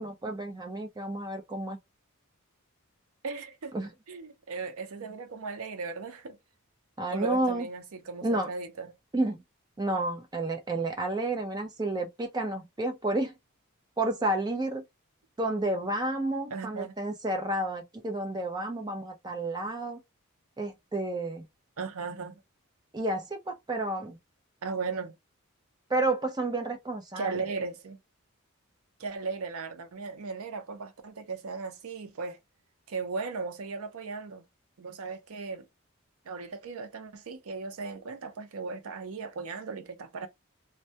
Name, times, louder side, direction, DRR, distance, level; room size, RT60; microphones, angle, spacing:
voice 1, 0.0-1.8 3.7-3.9 7.0-7.7 8.2-8.5 9.1-9.4 9.8-13.3 14.0-14.8 15.4-20.0 20.6-21.4 22.9-24.2 25.9-27.4, right 2 dB, 20° right, 0.4 m, -31 dB
voice 2, 3.2-3.7 4.1-6.4 7.1-8.9 16.5-16.9 21.8-22.4 24.6-25.2 27.2-28.0 29.0-32.4 32.9-34.5 34.8-35.7 36.3-40.3, right 4 dB, 75° right, 0.5 m, -37 dB
2.2 x 2.2 x 2.7 m
head